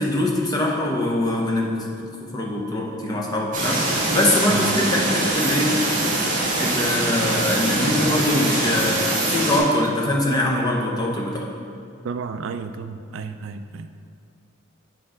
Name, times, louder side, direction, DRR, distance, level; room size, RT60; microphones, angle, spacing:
voice 1, 0.0-1.9 2.3-5.7 6.6-9.0 9.3-11.5, left 1 dB, 20° left, -2 dB, 0.8 m, -23 dB
sound 1, 3.5-9.6, right 2 dB, 40° right, 1.5 m, -23 dB
voice 2, 12.0-13.9, right 5 dB, 65° right, 9 dB, 0.3 m, -32 dB
8.4 x 4.8 x 3.7 m, 2.5 s
head